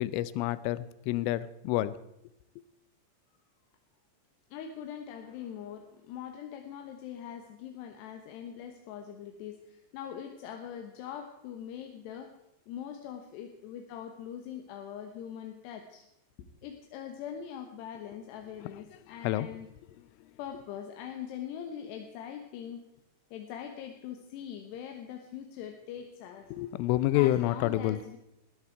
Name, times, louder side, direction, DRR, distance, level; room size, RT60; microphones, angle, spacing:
voice 1, 0.0-1.9 19.2-19.5 26.5-28.0, left 15 dB, 90° left, 17 dB, 3.2 m, -28 dB
voice 2, 4.5-12.3 12.7-16.0 16.6-19.7 20.4-22.8 23.3-26.5 27.1-28.2, left 9 dB, 70° left, 4 dB, 2.9 m, -42 dB
20.0 x 14.0 x 4.6 m, 0.84 s
omnidirectional pair, 5.6 m